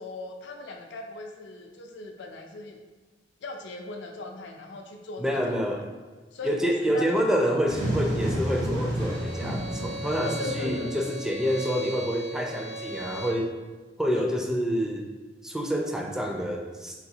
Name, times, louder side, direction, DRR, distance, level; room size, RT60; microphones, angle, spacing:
voice 1, 0.0-2.8 3.4-5.5 6.3-7.6 10.2-11.1, left 3 dB, 75° left, 3 dB, 0.4 m, -39 dB
voice 2, 5.2-5.9 6.4-13.6 14.0-15.1 15.4-16.9, equal, 5° right, 0 dB, 0.4 m, -27 dB
sound 1, 7.7-11.2, right 1 dB, 85° right, 1.4 m, -30 dB
Bowed string instrument, 8.9-13.5, right 1 dB, 45° right, 0.6 m, -38 dB
4.0 x 2.7 x 2.7 m, 1.4 s
head